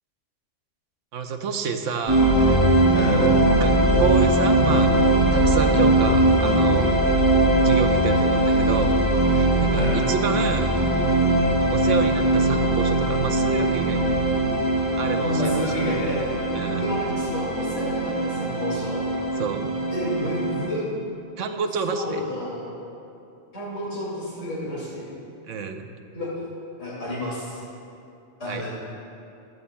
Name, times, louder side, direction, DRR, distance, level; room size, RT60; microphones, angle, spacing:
voice 1, 1.1-2.6 3.0-4.9 5.3-6.9 7.6-10.7 11.6-14.2 15.0-15.8 16.5-16.8 19.4-19.7 21.4-22.2 25.4-25.9 28.4-28.6, right 5 dB, 90° right, 6 dB, 1.1 m, -29 dB
sound 1, 2.1-20.7, right 1 dB, 20° right, 2.2 m, -20 dB
voice 2, 2.9-3.2 9.7-10.0 15.2-16.2 16.7-19.0 19.9-20.8 21.9-22.7 23.5-25.1 26.1-26.3 26.8-27.6 28.4-28.7, left 1 dB, 85° left, -8 dB, 2.8 m, -30 dB
15.5 x 12.5 x 2.2 m, 2.6 s
omnidirectional pair, 1.3 m